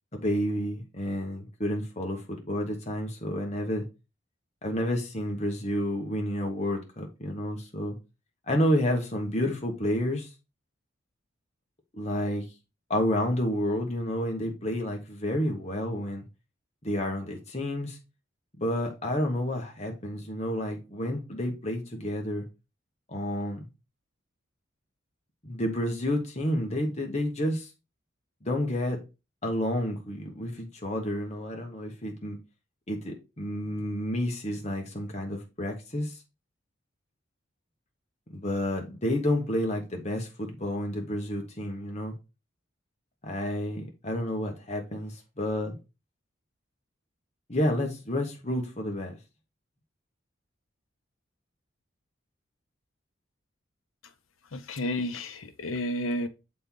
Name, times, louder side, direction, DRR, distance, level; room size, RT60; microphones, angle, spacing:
voice 1, 0.1-3.8 4.6-8.0 8.5-10.3 11.9-12.4 12.9-16.2 16.8-18.0 18.6-22.4 23.1-23.7 25.4-27.7 28.4-29.0 29.4-32.4 32.9-36.1 38.3-42.1 43.2-45.8 47.5-49.2, left 1 dB, 35° left, 1.3 m, -30 dB
voice 2, 54.5-56.3, left 1 dB, 90° left, 0.8 m, -31 dB
6.7 x 4.3 x 3.8 m
head